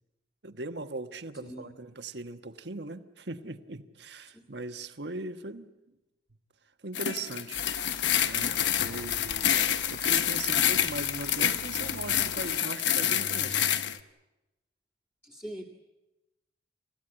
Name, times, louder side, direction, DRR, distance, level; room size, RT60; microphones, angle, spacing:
voice 1, 0.4-5.7 6.8-7.6 8.2-13.7, right 2 dB, 75° right, 9 dB, 1.3 m, -39 dB
sound 1, 6.9-14.0, left 10 dB, 85° left, 1.0 m, -28 dB
sound 2, 7.5-12.5, left 4 dB, 55° left, 3.2 m, -42 dB
sound 3, 8.8-13.9, left 1 dB, 90° right, 3.2 m, -50 dB
voice 2, 15.2-15.7, equal, 10° left, -2 dB, 1.8 m, -42 dB
28.5 x 15.5 x 9.9 m, 1.0 s
head